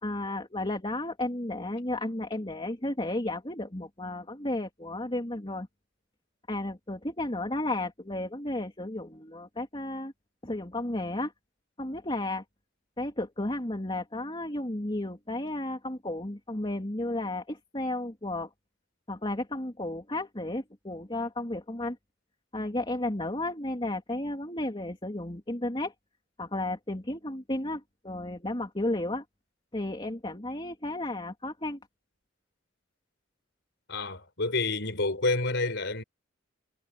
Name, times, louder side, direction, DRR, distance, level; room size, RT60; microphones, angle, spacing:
voice 1, 0.0-5.7 6.5-10.1 10.4-11.3 11.8-12.4 13.0-18.5 19.1-22.0 22.5-25.9 26.4-29.2 29.7-31.8, left 1 dB, 25° left, 2.9 m, -33 dB
voice 2, 33.9-36.0, left 3 dB, 65° left, 4.7 m, -29 dB
head